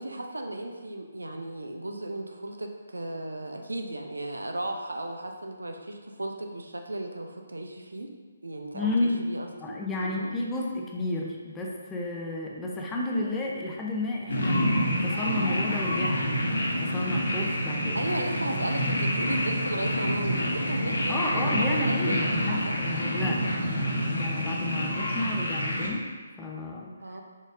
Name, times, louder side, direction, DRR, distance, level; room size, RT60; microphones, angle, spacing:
voice 1, 0.0-8.1 8.4-9.5 10.0-10.3 17.9-22.9 27.0-27.2, right 1 dB, 85° right, 3 dB, 0.5 m, -35 dB
voice 2, 8.7-9.2 9.6-16.2 16.5-18.1 21.1-26.0 26.4-26.9, left 2 dB, 10° left, -2 dB, 0.6 m, -32 dB
sound 1, 14.3-25.9, equal, 70° left, 1.0 m, -27 dB
5.1 x 4.0 x 2.5 m, 1.4 s
figure-of-eight pair, 145°, 0 cm